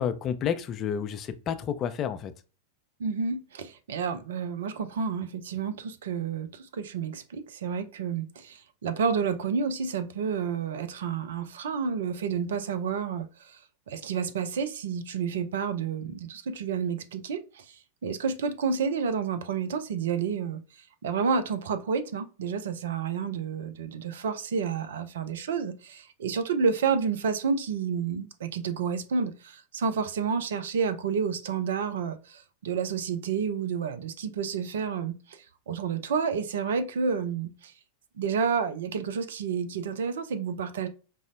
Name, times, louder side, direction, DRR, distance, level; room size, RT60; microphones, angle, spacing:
voice 1, 0.0-2.3, left 8 dB, 30° left, 0.3 m, -30 dB
voice 2, 3.0-13.6 13.9-17.6 18.0-20.6 21.0-35.4 35.7-37.7 38.2-40.9, right 6 dB, 60° right, 0.4 m, -30 dB
4.9 x 2.0 x 2.5 m
figure-of-eight pair, 90°, 0 cm